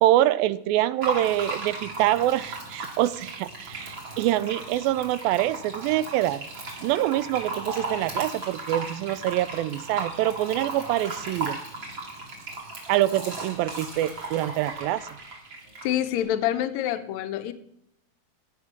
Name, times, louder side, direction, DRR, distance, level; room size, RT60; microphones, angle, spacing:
voice 1, 0.0-6.4 6.8-11.6 12.9-15.0, right 14 dB, 85° right, 16 dB, 2.4 m, -25 dB
Fill (with liquid), 1.0-16.2, right 2 dB, 35° right, 3.2 m, -36 dB
voice 2, 15.8-17.5, left 11 dB, 90° left, 9 dB, 1.6 m, -26 dB
14.5 x 8.3 x 5.9 m, 0.76 s
omnidirectional pair, 4.1 m